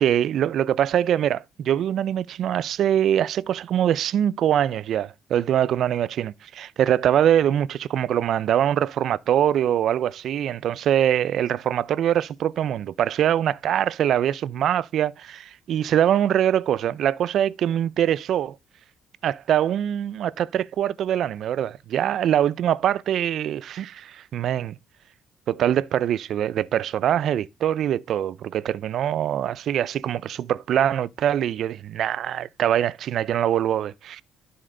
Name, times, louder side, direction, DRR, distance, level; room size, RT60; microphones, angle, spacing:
voice 1, 0.0-18.6 19.2-24.8 25.5-33.9, right 10 dB, 60° right, 0.4 m, -23 dB
12.0 x 4.3 x 3.7 m
cardioid pair, 120°, 0 cm